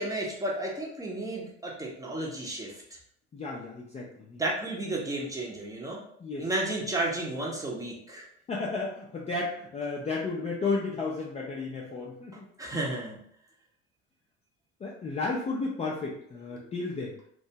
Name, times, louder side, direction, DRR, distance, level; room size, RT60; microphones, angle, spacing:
voice 1, 0.0-2.7 4.4-6.0 6.4-8.2 12.6-13.2, right 2 dB, 10° right, -3 dB, 0.7 m, -32 dB
voice 2, 3.3-4.4 6.2-6.5 8.5-12.5 14.8-17.2, left 3 dB, 20° left, -4 dB, 0.4 m, -33 dB
2.6 x 2.2 x 2.7 m, 0.66 s
figure-of-eight pair, 65°, 34 cm